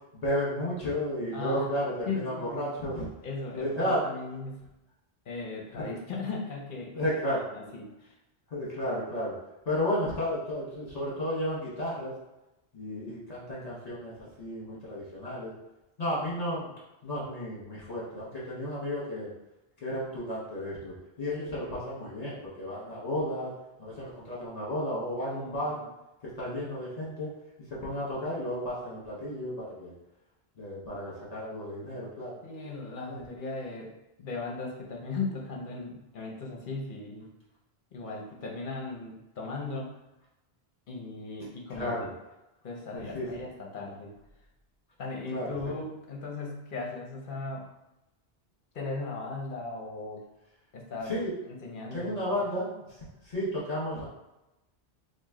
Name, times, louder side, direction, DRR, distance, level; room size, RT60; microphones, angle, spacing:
voice 1, 0.1-3.1 3.5-4.0 5.7-5.9 6.9-7.4 8.5-9.4 9.6-12.1 12.7-15.5 16.0-16.7 17.0-19.3 19.8-23.5 23.8-25.8 26.2-27.3 27.7-29.9 30.6-32.4 33.1-33.2 41.7-42.1 42.9-43.3 45.3-45.8 51.0-51.3 51.9-54.0, equal, 40° left, -7 dB, 1.3 m, -33 dB
voice 2, 1.3-1.7 2.1-2.7 3.2-4.6 5.3-6.9 7.5-8.1 25.3-25.6 32.4-33.9 34.2-37.3 37.9-39.9 40.9-42.0 42.6-44.1 45.0-47.7 48.7-50.2 50.7-51.1 51.6-52.2, left 3 dB, 55° left, -1 dB, 0.8 m, -37 dB
3.1 x 2.6 x 3.6 m, 0.95 s
omnidirectional pair, 1.1 m